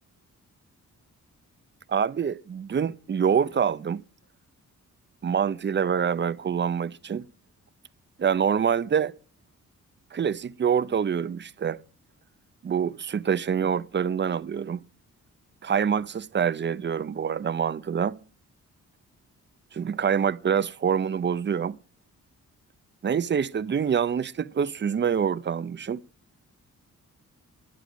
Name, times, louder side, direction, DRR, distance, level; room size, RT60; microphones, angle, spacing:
voice 1, 1.9-4.0 5.2-7.2 8.2-9.1 10.1-11.8 12.6-14.8 15.6-18.2 19.7-21.8 23.0-26.0, right 7 dB, 35° right, 0.6 m, -26 dB
12.0 x 11.0 x 5.0 m
cardioid pair, 105°, 31 cm